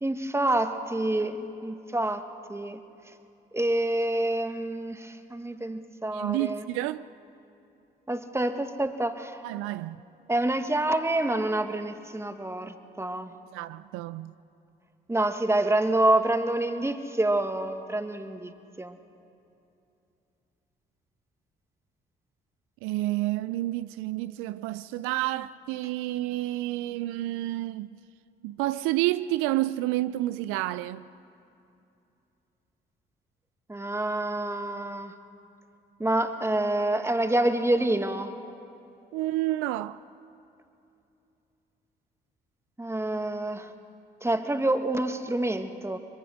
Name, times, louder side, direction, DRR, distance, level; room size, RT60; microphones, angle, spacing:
voice 1, 0.0-2.8 3.5-6.6 8.1-9.4 10.3-13.3 15.1-18.5 18.8-19.0 33.7-35.1 36.0-38.3 42.8-43.7 44.2-46.0, right 1 dB, 10° right, 1.7 m, -27 dB
voice 2, 6.1-7.1 9.4-10.0 13.5-14.3 22.8-27.9 28.4-31.1 39.1-40.0, right 16 dB, 80° right, 0.4 m, -29 dB
22.5 x 22.5 x 6.4 m
hypercardioid pair, 50°, 21 cm